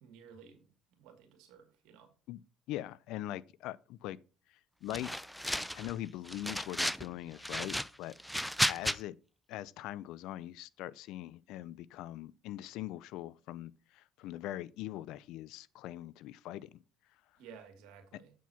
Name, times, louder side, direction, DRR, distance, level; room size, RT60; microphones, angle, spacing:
voice 1, 0.0-0.6 0.9-2.1 17.4-18.3, right 7 dB, 80° right, 2.2 m, -55 dB
voice 2, 2.7-4.2 4.8-5.1 5.7-8.2 8.7-9.1 9.5-16.8 18.1-18.2, left 14 dB, 75° left, 0.4 m, -42 dB
sound 1, 4.9-5.9 6.3-7.1 7.4-9.0, equal, ahead, 0.4 m, -33 dB
8.2 x 4.6 x 5.6 m
supercardioid pair, 85°, 0 cm